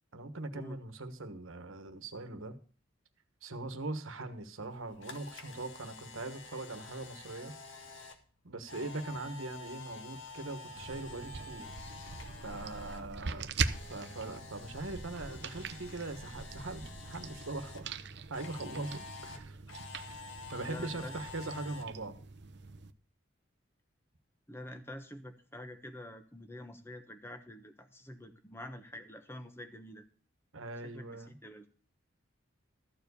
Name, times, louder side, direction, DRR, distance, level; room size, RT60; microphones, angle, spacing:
voice 1, 0.1-2.5 3.4-7.6 8.4-11.7 12.4-13.5 13.9-18.0 18.3-19.6 20.5-22.2 30.5-31.4, right 2 dB, 90° right, 9 dB, 1.4 m, -41 dB
Camera, 4.7-13.0 13.3-17.8 18.3-21.8, left 4 dB, 70° left, 1.7 m, -49 dB
sound 1, 10.8-22.9, right 4 dB, 55° right, 0.7 m, -42 dB
voice 2, 13.0-13.5 20.7-21.2 21.6-21.7 24.5-30.0 30.8-31.7, left 1 dB, 10° left, 7 dB, 1.1 m, -47 dB
13.5 x 4.8 x 8.3 m, 0.41 s
head